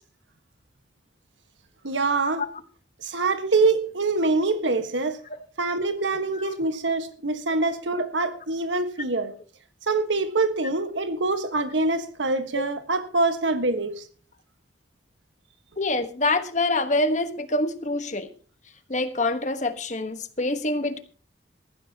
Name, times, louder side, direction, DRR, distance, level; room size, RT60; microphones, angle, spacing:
voice 1, 1.8-2.4 3.0-5.2 5.6-9.3 9.9-14.0, right 3 dB, 90° right, 1.5 m, -25 dB
voice 2, 15.8-18.3 18.9-21.0, left 2 dB, 40° left, 1.3 m, -25 dB
19.0 x 14.5 x 2.9 m
head